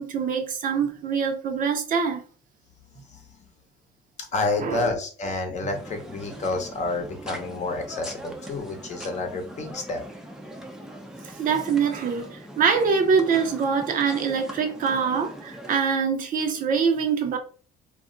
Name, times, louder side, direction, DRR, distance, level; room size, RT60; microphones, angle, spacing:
voice 1, 0.0-2.2 4.6-4.9 11.2-17.4, right 6 dB, 55° right, 0.6 m, -24 dB
voice 2, 4.2-10.0, left 3 dB, 45° left, 0.8 m, -29 dB
sound 1, 5.7-15.8, right 1 dB, 5° right, 0.5 m, -41 dB
2.4 x 2.1 x 3.7 m
cardioid pair, 110°, 17 cm